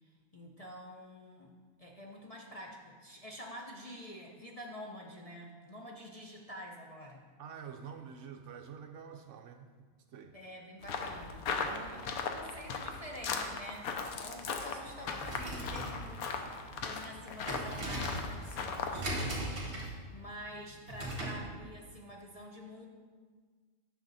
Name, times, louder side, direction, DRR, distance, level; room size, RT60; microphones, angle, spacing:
voice 1, 0.0-1.5 1.8-7.3 10.3-16.3 16.8-22.9, equal, 35° left, -1 dB, 0.6 m, -48 dB
voice 2, 7.4-10.4 11.6-12.1, right 7 dB, 65° right, 6 dB, 0.8 m, -48 dB
sound 1, 10.8-19.0, left 5 dB, 85° left, 1.2 m, -38 dB
sound 2, 15.1-21.5, right 1 dB, 40° right, 2.2 m, -39 dB
10.0 x 6.6 x 4.0 m, 1.5 s
omnidirectional pair, 1.5 m